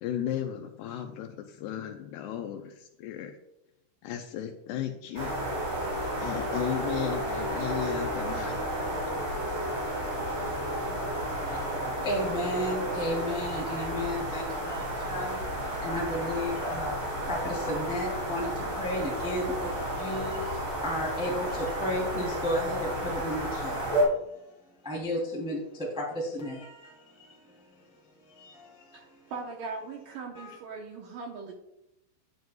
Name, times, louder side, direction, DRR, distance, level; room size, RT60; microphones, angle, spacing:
voice 1, 0.0-3.4 4.0-5.4 6.2-8.6, left 10 dB, 80° left, 6 dB, 2.5 m, -35 dB
sound 1, 5.1-24.0, equal, 25° right, 3.6 m, -32 dB
voice 2, 11.4-24.4 24.8-28.0 28.3-29.2 30.3-30.5, left 1 dB, ahead, -4 dB, 1.9 m, -34 dB
voice 3, 28.9-31.5, right 4 dB, 75° right, 1 dB, 2.0 m, -40 dB
10.5 x 9.4 x 2.3 m, 0.82 s
omnidirectional pair, 5.1 m